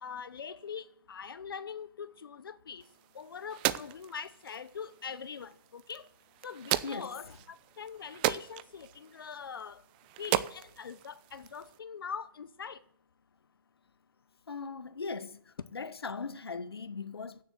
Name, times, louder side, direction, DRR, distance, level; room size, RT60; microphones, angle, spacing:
voice 1, 0.0-2.8 3.1-6.1 6.4-9.8 10.2-12.8, left 6 dB, 65° left, 0.9 m, -43 dB
sound 1, 2.8-11.8, right 14 dB, 20° right, 0.5 m, -37 dB
voice 2, 14.5-15.4 15.7-17.4, left 4 dB, 85° left, 1.2 m, -39 dB
15.0 x 7.3 x 7.7 m
hypercardioid pair, 150°, 13 cm